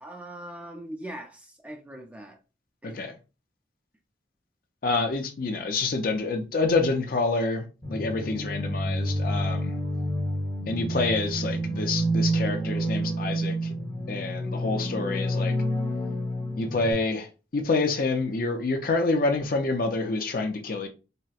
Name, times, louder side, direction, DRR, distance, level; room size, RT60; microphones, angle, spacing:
voice 1, 0.0-2.4 2.8-3.0, right 1 dB, 10° right, 0.4 m, -41 dB
voice 2, 2.8-3.1 4.8-9.8 10.7-13.7 14.1-15.6 16.6-17.3 17.5-20.9, left 3 dB, 50° left, 0.5 m, -27 dB
sound 1, 7.8-16.9, right 1 dB, 25° left, 1.2 m, -29 dB
4.1 x 2.1 x 2.3 m
head